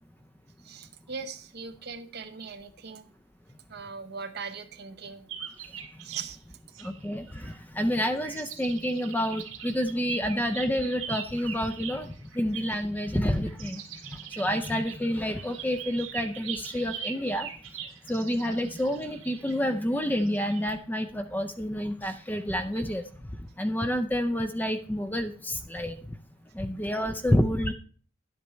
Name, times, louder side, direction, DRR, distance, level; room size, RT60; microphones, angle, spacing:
voice 1, 0.6-3.0 3.7-5.3 6.0-6.4 22.7-22.8, right 5 dB, 50° right, 7 dB, 0.8 m, -40 dB
sound 1, 5.3-6.3 6.7-7.9 8.2-20.6, right 8 dB, 70° right, 1.8 m, -42 dB
voice 2, 6.8-17.5 18.1-23.1 23.6-26.2 26.5-27.7, equal, 10° left, 8 dB, 0.4 m, -29 dB
10.5 x 8.5 x 3.1 m, 0.43 s
head